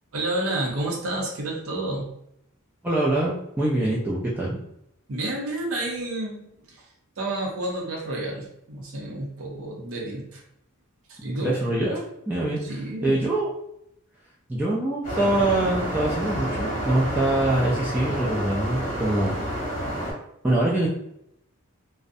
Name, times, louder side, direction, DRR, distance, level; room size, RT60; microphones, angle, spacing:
voice 1, 0.1-2.1 5.1-6.8 7.2-10.4 11.1-11.6 12.6-13.2, right 1 dB, 75° right, -2 dB, 0.6 m, -30 dB
voice 2, 2.8-4.6 11.4-13.5 14.5-19.4 20.4-20.9, right 1 dB, 10° right, -6 dB, 0.3 m, -24 dB
sound 1, 15.0-20.1, equal, 40° left, 1.0 m, -29 dB
2.4 x 2.0 x 2.5 m, 0.76 s
head